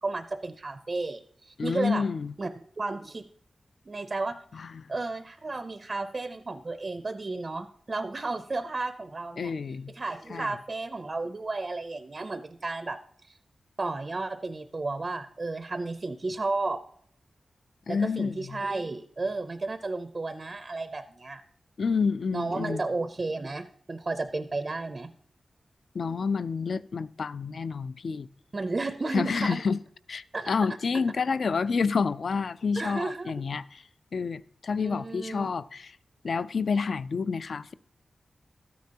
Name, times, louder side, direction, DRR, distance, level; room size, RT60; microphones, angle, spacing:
voice 1, 0.0-2.0 2.4-2.5 2.8-3.3 3.9-9.5 9.9-13.0 13.2-13.4 13.8-16.8 17.9-21.4 22.3-25.1 28.5-29.6 30.3-30.5 32.8-33.4 34.8-35.5, right 3 dB, 30° right, 0.4 m, -33 dB
voice 2, 1.6-2.3 4.5-4.9 9.4-9.9 10.3-10.5 17.9-18.6 21.8-22.8 25.9-28.3 29.1-29.8 30.1-33.8 34.1-36.0 36.2-37.7, left 5 dB, 60° left, 0.3 m, -29 dB
13.0 x 9.4 x 2.8 m
wide cardioid pair, 170°, 0 cm